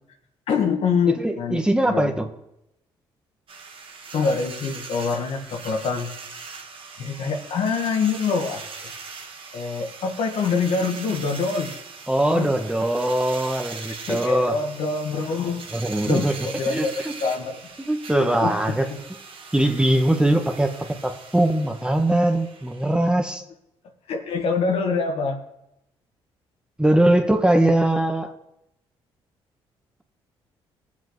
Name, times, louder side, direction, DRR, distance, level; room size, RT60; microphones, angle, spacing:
voice 1, 0.5-1.6 1.9-2.1 4.1-6.1 7.0-8.9 9.5-11.8 12.3-12.5 14.1-15.7 16.0-17.6 18.1-19.0 24.1-25.4, left 5 dB, 70° left, 1.5 m, -25 dB
voice 2, 1.2-2.3 12.1-14.6 15.7-16.4 16.7-17.2 17.8-18.9 19.5-20.7 21.0-23.4 26.8-28.3, right 1 dB, 10° right, 1.3 m, -21 dB
sound 1, 3.5-23.1, right 5 dB, 55° right, 1.6 m, -40 dB
19.0 x 7.4 x 3.2 m
supercardioid pair, 70°, 11 cm